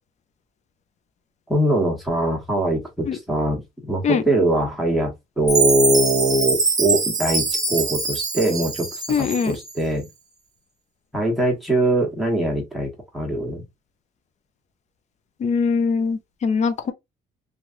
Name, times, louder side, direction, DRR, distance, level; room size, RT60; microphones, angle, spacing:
voice 1, 1.5-10.1 11.1-13.6, right 1 dB, ahead, 1.4 m, -22 dB
Chime, 5.5-9.7, right 4 dB, 20° right, 0.9 m, -23 dB
voice 2, 9.1-9.6 15.4-16.9, left 5 dB, 45° left, 0.6 m, -22 dB
3.1 x 2.4 x 2.5 m
cardioid pair, 110°, 17 cm